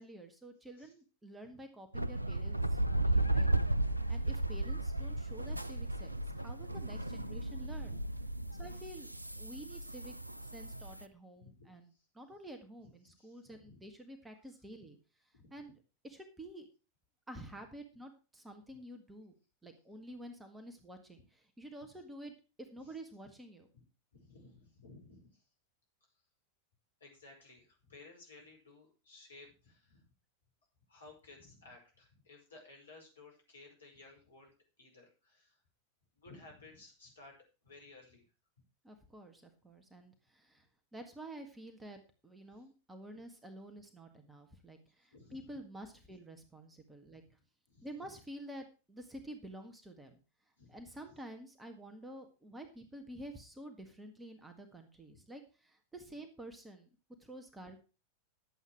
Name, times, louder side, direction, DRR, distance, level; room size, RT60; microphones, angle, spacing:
voice 1, 0.0-3.5 4.1-7.9 8.6-10.1 10.4-11.9 12.1-15.0 15.5-15.7 16.0-16.7 17.3-19.3 19.6-22.3 22.6-23.7 38.8-40.7 40.9-47.2 47.8-50.2 50.7-56.9 57.2-57.8, right 1 dB, 10° right, 5 dB, 1.8 m, -50 dB
sound 1, 1.9-11.0, right 1 dB, 85° right, 0.4 m, -34 dB
voice 2, 6.3-8.0 8.4-8.8 11.4-12.1 13.0-13.8 14.8-14.9 15.3-15.5 17.5-17.6 18.7-18.8 21.9-22.0 22.8-23.0 23.2-23.3 23.7-23.8 24.1-25.4 27.0-30.1 30.9-35.6 36.2-37.4 37.6-38.2 42.5-42.6 45.1-45.6 46.1-46.2 47.1-47.3 47.7-48.1 50.6-50.8 51.1-51.2 55.1-55.2, left 3 dB, 70° left, 0 dB, 5.2 m, -58 dB
11.0 x 8.1 x 4.7 m, 0.33 s
figure-of-eight pair, 90°, 0 cm